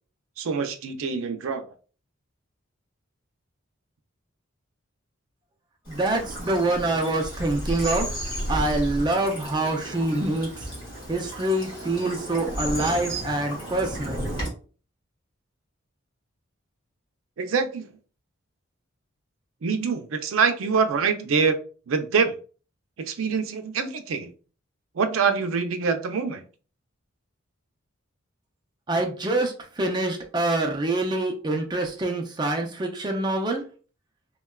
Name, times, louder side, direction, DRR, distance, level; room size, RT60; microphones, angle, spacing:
voice 1, 0.4-1.6 17.4-17.9 19.6-21.6 21.9-22.4 23.1-24.3 25.0-26.4, right 5 dB, 80° right, 8 dB, 0.4 m, -25 dB
Bird vocalization bird call bird song / Stream, 5.9-14.5, equal, 20° left, 1.3 m, -33 dB
voice 2, 5.9-8.1 8.5-10.5 11.1-14.2 28.9-33.6, right 2 dB, 20° right, 3 dB, 0.4 m, -25 dB
3.6 x 2.2 x 2.2 m, 0.38 s
head